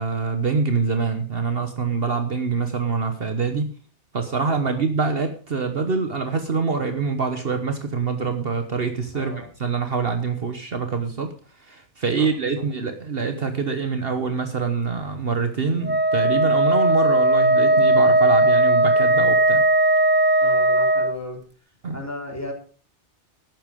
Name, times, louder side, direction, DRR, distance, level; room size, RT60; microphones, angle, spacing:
voice 1, 0.0-3.7 4.1-19.6 21.8-22.0, right 5 dB, 55° right, 7 dB, 1.3 m, -25 dB
voice 2, 9.1-9.5 12.2-12.3 20.4-21.4 21.9-22.5, left 2 dB, 15° left, 1 dB, 3.6 m, -34 dB
Wind instrument woodwind instrument, 15.8-21.2, right 1 dB, 15° right, 0.4 m, -17 dB
12.5 x 9.2 x 5.1 m, 0.40 s
omnidirectional pair, 1.2 m